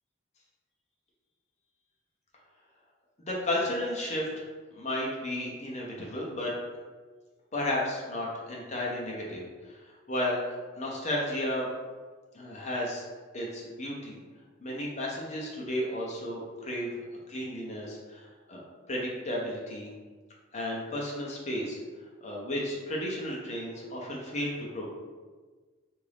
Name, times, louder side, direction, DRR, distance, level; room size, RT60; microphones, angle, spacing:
voice 1, 3.3-4.3 4.7-6.5 7.5-9.8 10.1-11.7 12.3-13.0 13.3-14.2 14.6-18.2 18.5-18.6 18.9-19.9 20.5-21.8 22.2-24.9, left 1 dB, 35° left, -3 dB, 0.7 m, -33 dB
3.6 x 2.6 x 3.4 m, 1.4 s
head